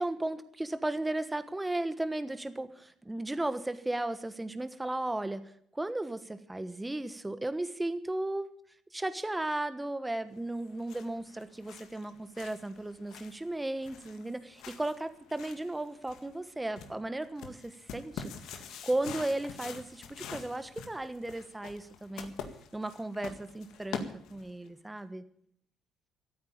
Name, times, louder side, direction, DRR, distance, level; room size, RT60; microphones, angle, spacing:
voice 1, 0.0-8.6 8.9-22.3 22.7-25.2, right 2 dB, 15° right, 12 dB, 1.2 m, -35 dB
sound 1, 10.5-24.7, left 6 dB, 70° left, 1.9 m, -46 dB
14.5 x 8.8 x 8.7 m, 0.65 s
hypercardioid pair, 60°, 0 cm